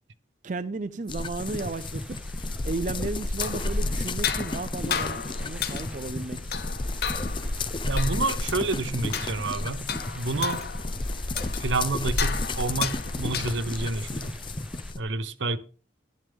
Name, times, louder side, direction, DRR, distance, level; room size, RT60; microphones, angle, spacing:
voice 1, 0.4-2.2 2.6-6.6, right 3 dB, 40° right, 0.5 m, -34 dB
sound 1, 1.1-15.0, left 2 dB, 25° left, 0.6 m, -31 dB
sound 2, 1.4-14.9, right 1 dB, 5° right, 0.8 m, -50 dB
sound 3, 3.2-13.9, left 7 dB, 55° left, 0.9 m, -35 dB
voice 2, 7.8-9.8 10.1-10.6 11.6-14.4 15.0-15.6, right 3 dB, 80° right, 0.9 m, -29 dB
12.0 x 11.0 x 3.6 m
head